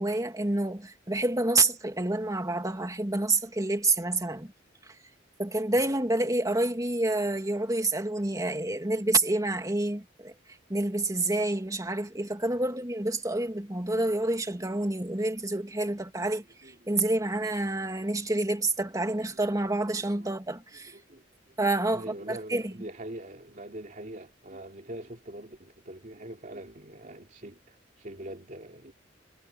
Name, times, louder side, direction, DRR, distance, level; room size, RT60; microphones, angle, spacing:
voice 1, 0.0-4.5 5.4-10.3 10.7-16.4 16.9-20.9 21.6-22.7, right 2 dB, 20° right, 2.4 m, -28 dB
voice 2, 15.4-16.0 16.3-16.9 19.0-19.4 19.9-20.3 20.8-21.5 21.9-28.9, right 1 dB, 45° right, 2.7 m, -44 dB
head